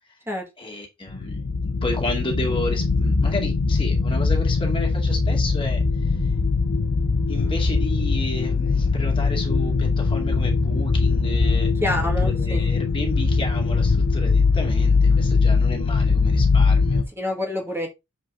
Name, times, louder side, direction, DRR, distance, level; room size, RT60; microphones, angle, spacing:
voice 1, 0.6-1.5 1.8-5.8 7.3-11.7 12.2-17.0, left 2 dB, 25° left, 2.2 m, -32 dB
sound 1, 1.1-17.0, left 4 dB, 70° left, 0.8 m, -21 dB
voice 2, 11.8-12.7 17.2-17.9, left 1 dB, 10° right, 2.0 m, -27 dB
6.9 x 5.2 x 3.8 m
head